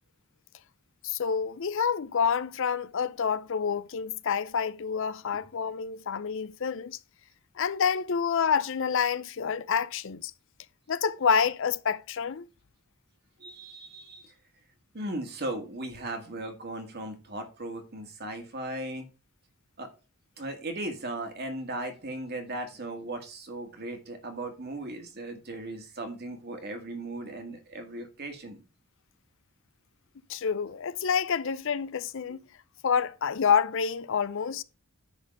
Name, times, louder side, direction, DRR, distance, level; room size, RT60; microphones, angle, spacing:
voice 1, 1.0-7.0 7.6-10.3 10.9-12.5 30.3-32.4 32.8-34.6, left 6 dB, 60° left, 0.5 m, -28 dB
voice 2, 13.4-14.3 14.9-19.1 19.8-19.9 20.4-28.6 32.3-32.4, right 1 dB, 50° right, 1.9 m, -37 dB
10.0 x 4.2 x 5.3 m
head